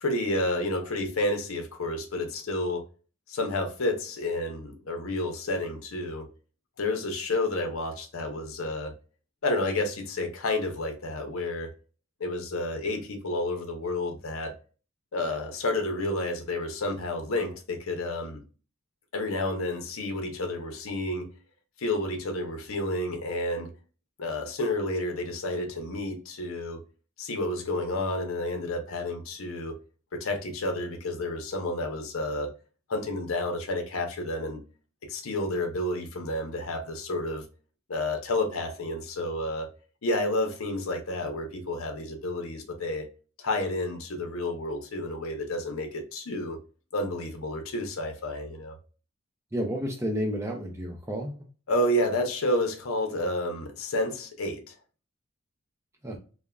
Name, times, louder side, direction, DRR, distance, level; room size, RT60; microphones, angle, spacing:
voice 1, 0.0-2.8 3.3-6.3 6.8-8.9 9.4-11.7 12.2-14.5 15.1-18.4 19.1-21.3 21.8-23.7 24.2-26.8 27.2-29.8 30.1-32.5 32.9-34.6 35.0-37.4 37.9-39.7 40.0-43.1 43.4-46.6 46.9-48.8 51.7-54.7, left 1 dB, 80° left, 0.6 m, -30 dB
voice 2, 49.5-51.5 56.0-56.2, equal, 15° right, 0.4 m, -31 dB
3.3 x 2.1 x 2.3 m
head